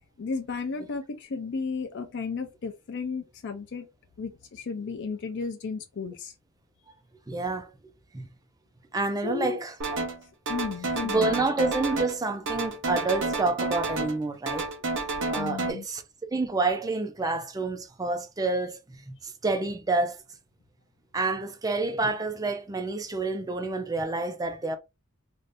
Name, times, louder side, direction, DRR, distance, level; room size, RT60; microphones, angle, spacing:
voice 1, 0.2-3.9 4.2-6.3 9.2-9.6 10.5-11.4 15.3-15.9, left 5 dB, 55° left, 0.4 m, -34 dB
voice 2, 7.3-7.7 8.1-8.3 8.9-10.0 11.0-14.7 15.3-16.0 16.3-18.8 19.1-20.2 21.1-24.8, right 3 dB, 15° right, 0.4 m, -28 dB
sound 1, 9.8-10.2 10.5-12.2 12.5-14.2 14.5-15.7, right 3 dB, 60° right, 0.8 m, -30 dB
2.6 x 2.4 x 3.3 m
head